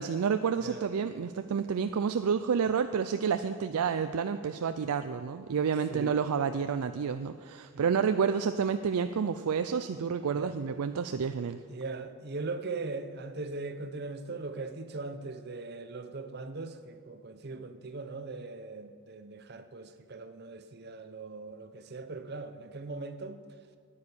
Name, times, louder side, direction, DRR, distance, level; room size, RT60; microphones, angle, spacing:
voice 1, 0.0-11.6, right 6 dB, 85° right, 9 dB, 0.4 m, -29 dB
voice 2, 11.7-23.4, right 3 dB, 45° right, 9 dB, 0.7 m, -40 dB
10.0 x 9.7 x 6.9 m, 2.1 s
head